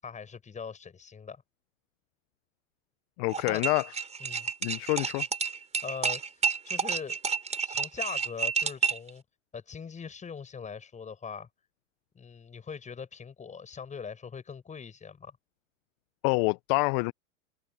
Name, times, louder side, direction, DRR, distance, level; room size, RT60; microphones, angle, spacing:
voice 1, 0.0-1.4 3.4-3.6 4.2-4.5 5.8-7.2 7.6-9.2 9.5-11.5 12.1-15.4, left 6 dB, 20° left, 8.0 m, -41 dB
voice 2, 3.2-3.8 4.6-5.2 16.2-17.1, left 29 dB, 45° left, 1.0 m, -27 dB
sound 1, 3.3-9.1, right 5 dB, 15° right, 4.4 m, -30 dB
hypercardioid pair, 110°, 39 cm